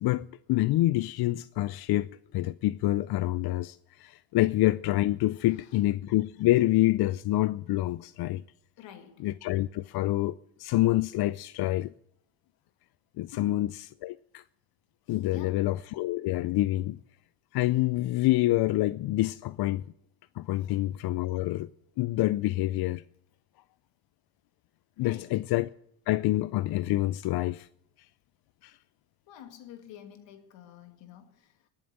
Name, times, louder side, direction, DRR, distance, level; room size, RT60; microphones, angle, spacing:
voice 1, 0.0-8.4 9.2-11.9 13.2-13.7 14.0-14.4 15.1-17.0 17.5-19.8 20.4-21.7 22.0-23.0 25.0-25.7 26.1-27.7 28.6-28.7, left 16 dB, 60° left, 0.5 m, -27 dB
voice 2, 5.4-5.8 8.8-9.3 13.3-13.8 15.1-15.7 20.6-20.8 25.0-25.5 29.3-31.7, left 10 dB, 75° left, 2.3 m, -49 dB
19.5 x 7.4 x 7.9 m
cardioid pair, 95°, 44 cm